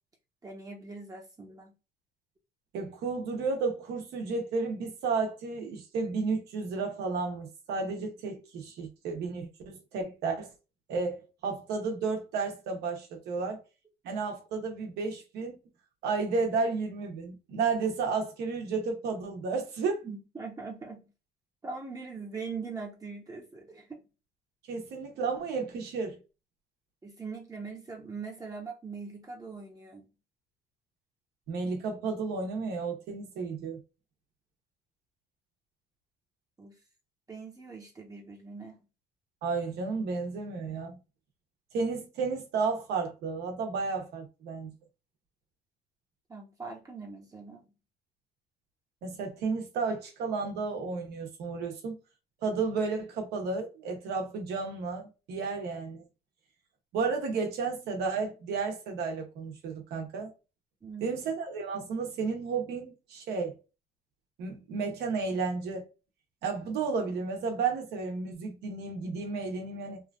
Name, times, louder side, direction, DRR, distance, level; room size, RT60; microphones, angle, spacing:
voice 1, 0.4-1.7 20.0-21.1 21.6-24.0 27.0-30.1 36.6-36.8 37.3-38.8 46.3-47.6 60.8-61.2, right 4 dB, 20° right, 0.8 m, -41 dB
voice 2, 2.7-10.5 10.9-13.6 14.0-15.6 16.0-20.1 24.7-26.2 31.5-33.8 39.4-41.0 41.7-44.7 49.0-52.0 52.4-56.0 56.9-60.3 61.0-63.6 64.4-65.9 66.4-70.0, right 4 dB, 80° right, 1.0 m, -32 dB
3.0 x 2.3 x 2.3 m
cardioid pair, 110°, 17 cm